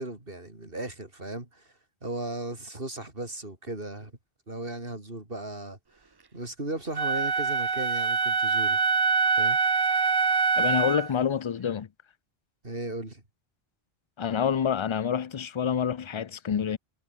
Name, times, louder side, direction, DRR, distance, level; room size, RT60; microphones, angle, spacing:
voice 1, 0.0-1.7 2.0-4.1 4.5-5.8 6.3-8.8 9.4-9.6 12.6-13.2, right 2 dB, 60° right, 4.5 m, -36 dB
Wind instrument woodwind instrument, 7.0-11.1, right 5 dB, 30° right, 0.5 m, -24 dB
voice 2, 10.6-11.9 14.2-16.8, left 7 dB, 50° left, 0.3 m, -27 dB
omnidirectional pair, 1.1 m